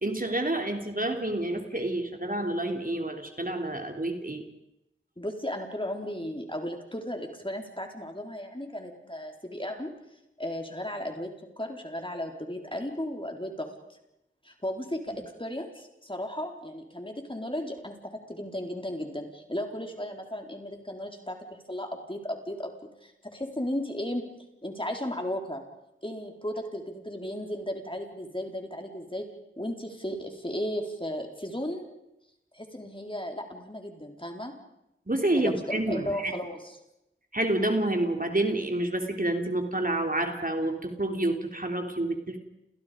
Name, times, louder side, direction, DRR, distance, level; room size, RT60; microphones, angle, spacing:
voice 1, 0.0-4.4 35.1-36.3 37.3-42.4, right 1 dB, 45° right, 4 dB, 3.6 m, -28 dB
voice 2, 5.2-9.9 10.4-11.3 11.6-13.7 14.4-21.4 21.7-22.7 23.0-24.2 24.6-25.6 26.0-29.3 29.6-31.9 32.5-34.5 35.3-36.8, left 1 dB, 25° left, 3 dB, 4.4 m, -35 dB
29.5 x 29.5 x 5.3 m, 0.85 s
wide cardioid pair, 40°, 21 cm